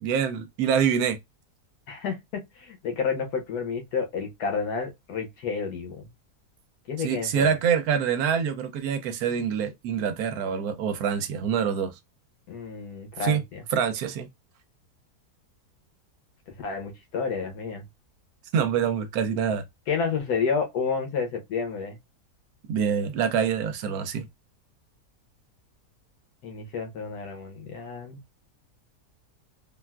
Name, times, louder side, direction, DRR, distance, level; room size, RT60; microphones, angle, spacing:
voice 1, 0.0-1.2 7.0-11.9 13.2-13.4 13.7-14.3 18.5-19.6 22.7-24.3, right 7 dB, 75° right, 1.0 m, -25 dB
voice 2, 2.6-6.1 6.9-7.6 12.5-13.6 16.6-17.8 19.9-22.0 26.4-28.2, left 5 dB, 75° left, 1.3 m, -30 dB
3.4 x 2.4 x 2.2 m
omnidirectional pair, 1.7 m